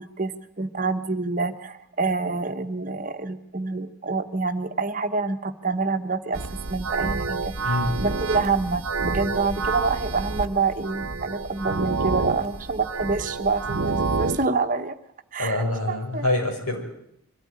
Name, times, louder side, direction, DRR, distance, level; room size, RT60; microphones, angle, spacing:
voice 1, 0.0-6.4 6.7-7.5 8.0-15.0 15.3-16.3, right 4 dB, 35° right, 8 dB, 1.1 m, -27 dB
sound 1, 6.3-14.5, right 4 dB, 65° right, 0.8 m, -28 dB
voice 2, 15.4-16.8, left 2 dB, 90° left, 2 dB, 6.0 m, -25 dB
23.5 x 13.5 x 9.6 m, 0.77 s
head